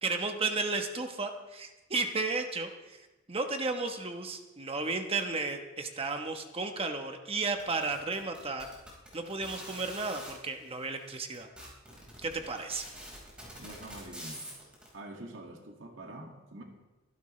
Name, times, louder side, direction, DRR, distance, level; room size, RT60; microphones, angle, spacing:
voice 1, 0.0-8.7 9.1-11.5 12.2-12.9, right 3 dB, 30° right, 5 dB, 1.1 m, -33 dB
sound 1, 7.5-10.3 11.0-11.1 11.3-14.9, equal, 5° right, 5.0 m, -45 dB
voice 2, 13.6-14.5 14.9-16.6, right 1 dB, 70° right, 1 dB, 2.1 m, -46 dB
23.5 x 12.0 x 3.3 m, 1.1 s
head